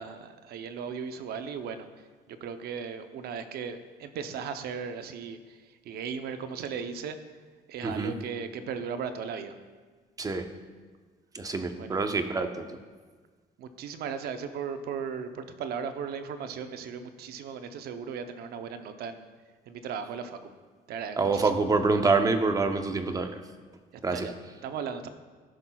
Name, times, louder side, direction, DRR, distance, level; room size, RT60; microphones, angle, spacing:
voice 1, 0.0-1.9 2.3-5.6 5.8-7.2 7.7-9.5 11.7-12.0 13.6-19.3 19.7-20.4 20.9-21.7 24.1-24.3 24.6-25.1, right 6 dB, 70° right, 9 dB, 0.7 m, -37 dB
voice 2, 7.8-8.1 10.2-10.5 11.3-12.8 21.2-23.4 24.0-24.3, right 3 dB, 20° right, 7 dB, 0.6 m, -26 dB
13.5 x 5.8 x 2.3 m, 1.4 s
cardioid pair, 110°, 17 cm